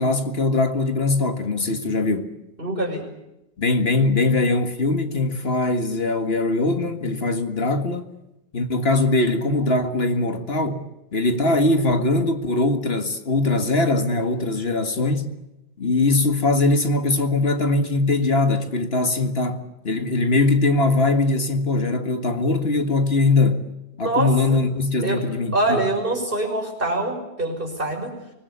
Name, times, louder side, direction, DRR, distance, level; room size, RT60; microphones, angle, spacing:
voice 1, 0.0-2.3 3.6-8.1 8.5-10.8 11.1-15.3 15.8-23.6 24.0-25.8, left 2 dB, 65° left, 2.1 m, -21 dB
voice 2, 2.6-3.0 24.0-24.6 25.0-25.2 25.5-28.1, right 2 dB, 55° right, 6.1 m, -24 dB
25.0 x 20.0 x 8.3 m
omnidirectional pair, 1.1 m